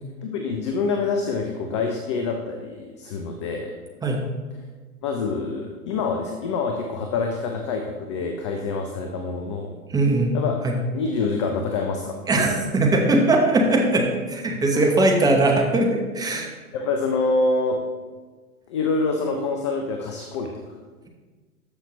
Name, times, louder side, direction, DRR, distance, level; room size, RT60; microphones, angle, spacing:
voice 1, 0.2-3.7 5.0-9.7 10.3-10.6 10.9-12.6 13.0-13.1 14.7-14.9 16.3-16.5 16.7-17.8 18.7-20.8, left 4 dB, 20° left, 3 dB, 0.4 m, -26 dB
voice 2, 9.9-10.4 10.6-10.8 12.3-16.5, right 2 dB, 10° right, 1 dB, 0.8 m, -20 dB
13.0 x 5.7 x 3.0 m, 1.4 s
figure-of-eight pair, 110°, 45 cm